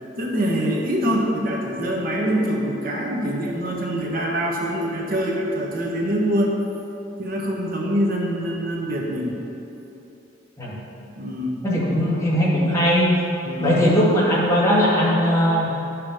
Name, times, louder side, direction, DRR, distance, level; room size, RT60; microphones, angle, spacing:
voice 1, 0.2-6.5 7.2-9.4 11.2-11.6 13.4-13.8, equal, 50° right, -1 dB, 1.2 m, -24 dB
voice 2, 11.6-13.1 13.6-15.7, equal, 15° left, -7 dB, 2.0 m, -19 dB
11.5 x 6.1 x 5.0 m, 2.9 s
head